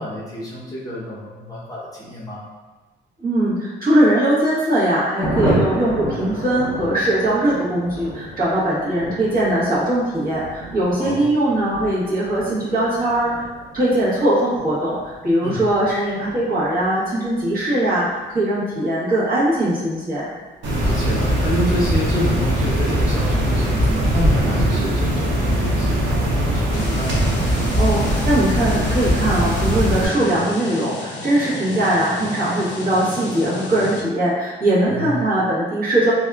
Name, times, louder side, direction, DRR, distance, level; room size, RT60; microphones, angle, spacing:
voice 1, 0.0-2.4 11.0-11.2 15.4-15.6 20.8-27.3 34.8-35.1, left 1 dB, 15° left, -8 dB, 0.8 m, -28 dB
voice 2, 3.2-13.5 13.7-20.3 27.8-36.1, right 1 dB, 45° right, -9 dB, 1.2 m, -20 dB
Thunder, 5.2-21.3 21.6-21.7 22.0-22.1 22.4-22.8, equal, 15° right, 0.9 m, -32 dB
sound 1, 20.6-30.0, right 1 dB, 70° right, 0.7 m, -20 dB
sound 2, 26.7-34.0, left 2 dB, 70° left, 0.5 m, -32 dB
2.7 x 2.3 x 2.3 m, 1.2 s
cardioid pair, 90°, 20 cm